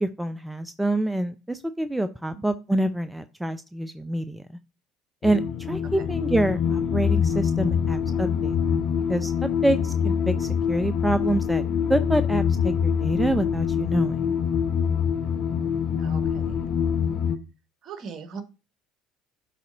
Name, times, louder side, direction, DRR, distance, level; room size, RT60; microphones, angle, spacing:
voice 1, 0.0-4.4 5.2-8.6 9.1-11.6 11.9-14.3, right 1 dB, 5° right, 11 dB, 0.5 m, -26 dB
sound 1, 5.2-17.4, left 7 dB, 50° left, 0.7 m, -25 dB
voice 2, 16.0-16.6 17.8-18.4, right 6 dB, 45° right, 9 dB, 1.3 m, -40 dB
12.0 x 4.1 x 2.5 m, 0.30 s
hypercardioid pair, 65°, 0 cm